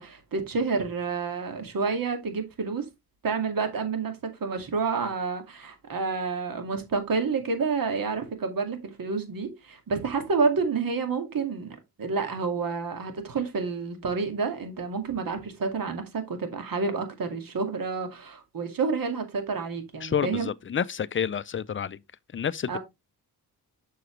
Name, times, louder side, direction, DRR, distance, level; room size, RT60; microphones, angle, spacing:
voice 1, 0.0-2.9 3.2-20.5 22.7-22.8, right 4 dB, 60° right, 2.3 m, -29 dB
voice 2, 20.0-22.0 22.3-22.8, left 7 dB, 30° left, 0.5 m, -29 dB
7.5 x 6.2 x 3.2 m
cardioid pair, 80°, 39 cm